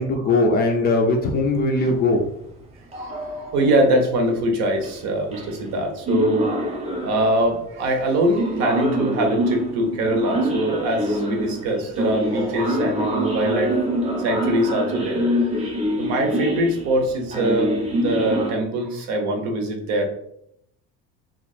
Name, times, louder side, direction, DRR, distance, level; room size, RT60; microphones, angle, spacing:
voice 1, 0.0-2.3, left 2 dB, 30° left, 2 dB, 0.4 m, -20 dB
sound 1, 2.9-3.9 4.8-4.9 5.3-5.7 6.1-7.4 8.4-18.5, equal, 20° right, 0.5 m, -25 dB
voice 2, 2.9-6.5 7.0-13.7 14.2-15.2 15.9-20.0, right 1 dB, 60° right, 3 dB, 0.9 m, -23 dB
2.8 x 2.4 x 4.1 m, 0.74 s
cardioid pair, 165°, 32 cm